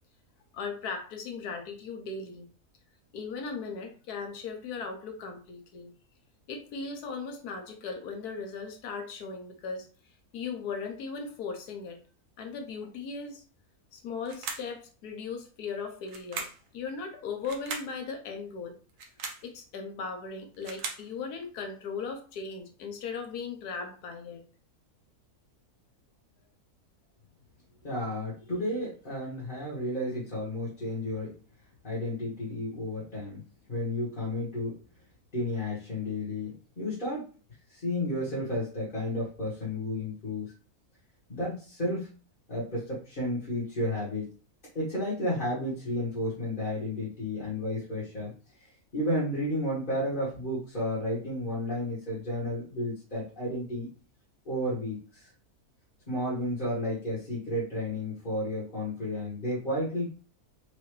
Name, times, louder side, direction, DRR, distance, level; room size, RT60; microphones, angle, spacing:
voice 1, 0.5-2.5 3.1-5.9 6.5-9.9 10.3-12.0 12.4-13.4 13.9-18.8 19.4-24.4, left 5 dB, 85° left, 5 dB, 1.4 m, -38 dB
sound 1, 14.2-14.8 16.1-16.7 17.4-17.9 18.9-19.5 20.3-21.1, right 4 dB, 65° right, 1.1 m, -38 dB
voice 2, 27.8-31.3 31.8-33.4 33.7-34.7 35.3-37.3 37.7-40.5 41.3-42.1 42.5-44.2 44.7-48.3 48.9-53.9 54.5-55.3 56.1-60.1, left 1 dB, 35° left, -7 dB, 1.8 m, -32 dB
4.8 x 2.9 x 3.2 m, 0.36 s
omnidirectional pair, 1.6 m